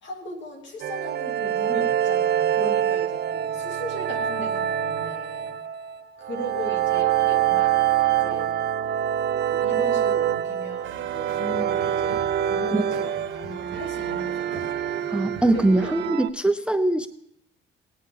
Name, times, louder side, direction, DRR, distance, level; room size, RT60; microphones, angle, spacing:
voice 1, 0.0-5.6 6.2-8.5 9.5-15.1 15.4-16.0, left 1 dB, 70° left, 2 dB, 2.8 m, -38 dB
sound 1, 0.8-16.3, right 10 dB, 60° right, 0.5 m, -25 dB
Mallet percussion, 4.1-6.6, equal, 40° left, 5.3 m, -39 dB
sound 2, 10.8-16.1, right 8 dB, 75° right, 1.1 m, -39 dB
voice 2, 15.1-17.1, right 2 dB, 5° right, 12 dB, 0.5 m, -22 dB
18.0 x 8.6 x 3.7 m, 0.75 s
cardioid pair, 90°, 20 cm